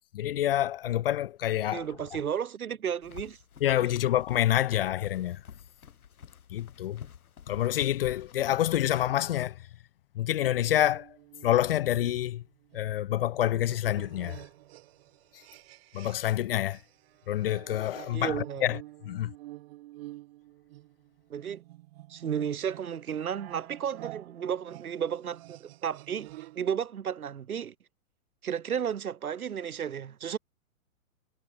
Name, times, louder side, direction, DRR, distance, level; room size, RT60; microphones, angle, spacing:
voice 1, 0.1-1.8 3.6-5.4 6.5-7.0 7.5-9.6 10.2-11.1 11.4-12.4 12.7-14.4 15.9-16.8 17.3-18.8 19.0-19.3, left 12 dB, 45° left, 0.5 m, -27 dB
voice 2, 1.7-3.4 18.1-18.7 21.3-21.6 22.1-26.3 26.5-27.7 28.4-30.4, right 8 dB, 85° right, 5.5 m, -33 dB
sound 1, 3.0-8.5, left 8 dB, 90° left, 4.7 m, -49 dB
sound 2, 10.7-16.4 16.7-26.7, right 17 dB, 45° right, 4.4 m, -48 dB
hypercardioid pair, 155°, 42 cm